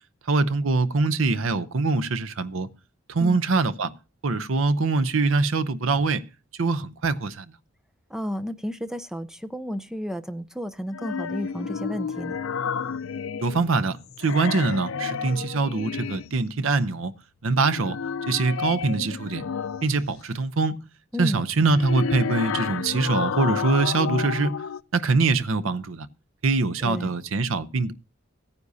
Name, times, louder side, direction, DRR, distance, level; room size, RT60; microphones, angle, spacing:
voice 1, 0.3-2.7 3.1-3.9 4.2-6.2 6.6-7.5 13.4-17.1 17.4-18.0 18.3-19.4 19.8-20.7 21.2-24.5 24.9-26.1 26.4-27.9, right 3 dB, 75° right, 0.7 m, -23 dB
voice 2, 8.1-12.4 21.1-21.4 26.8-27.1, equal, 5° right, 0.5 m, -32 dB
sound 1, 10.9-13.8 14.1-16.4 17.5-20.1 21.5-24.8, left 6 dB, 85° left, 0.4 m, -31 dB
16.5 x 9.7 x 2.7 m
head